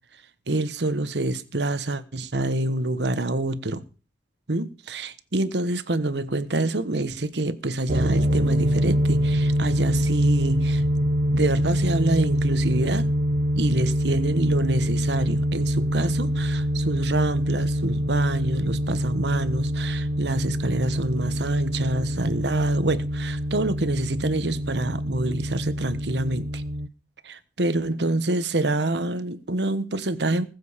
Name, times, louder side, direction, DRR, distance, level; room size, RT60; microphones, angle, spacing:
voice 1, 0.5-3.8 4.5-10.8 11.3-13.1 13.5-26.6 27.2-30.4, right 2 dB, 75° right, 1.2 m, -26 dB
sound 1, 7.9-26.9, equal, 55° right, 0.9 m, -25 dB
20.0 x 7.8 x 5.1 m
head